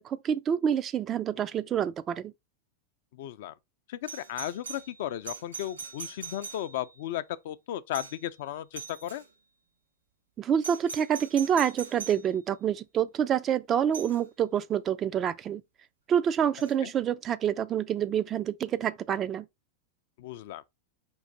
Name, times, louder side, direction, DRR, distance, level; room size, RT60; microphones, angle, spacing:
voice 1, 0.0-2.3 10.4-15.6 16.1-19.5, right 8 dB, 25° right, 0.3 m, -27 dB
voice 2, 3.1-3.5 3.9-9.2 16.8-16.9 20.2-20.6, left 12 dB, 55° left, 0.4 m, -35 dB
Doorbell, 4.1-7.0 7.9-8.3 8.7-9.3 10.6-12.3 13.9-14.2 16.6-16.7, right 5 dB, 75° right, 2.1 m, -42 dB
5.3 x 2.6 x 3.7 m
figure-of-eight pair, 90°, 0 cm